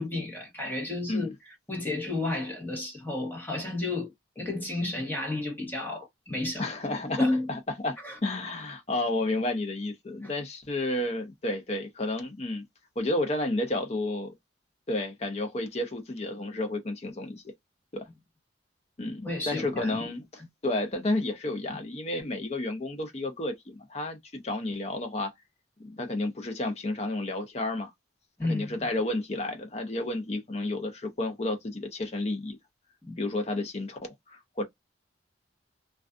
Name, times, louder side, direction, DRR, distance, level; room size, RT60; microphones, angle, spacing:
voice 1, 0.0-6.7 7.2-7.5 8.0-8.2 10.2-10.3 19.2-20.1 28.4-28.8 33.1-33.2, left 2 dB, 10° left, 1.0 m, -32 dB
voice 2, 6.6-8.0 8.2-12.6 13.0-14.3 14.9-17.4 17.9-18.0 19.0-25.3 25.8-27.9 28.4-32.6 33.2-34.0 34.3-34.6, left 2 dB, 35° left, 0.6 m, -31 dB
2.4 x 2.3 x 2.4 m
head